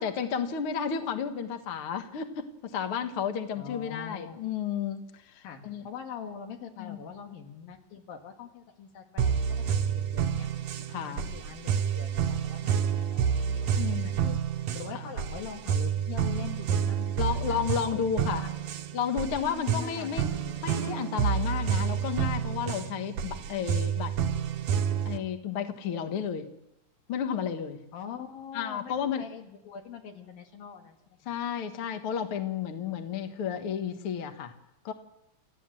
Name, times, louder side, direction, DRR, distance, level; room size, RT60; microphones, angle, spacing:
voice 1, 0.0-5.8 6.8-7.0 10.9-11.3 13.8-14.2 15.0-15.1 17.2-18.4 18.9-24.2 25.0-26.5 27.1-27.8 28.5-29.2 31.2-34.5 34.8-34.9, left 7 dB, 50° left, 7 dB, 1.8 m, -32 dB
voice 2, 3.6-4.4 5.4-10.5 11.0-14.4 14.7-18.0 18.4-18.5 19.4-20.6 27.9-31.3, left 7 dB, 85° left, 3 dB, 3.7 m, -43 dB
sound 1, 9.2-25.2, right 8 dB, 65° right, 2.1 m, -29 dB
29.0 x 14.5 x 7.7 m, 0.89 s
omnidirectional pair, 4.0 m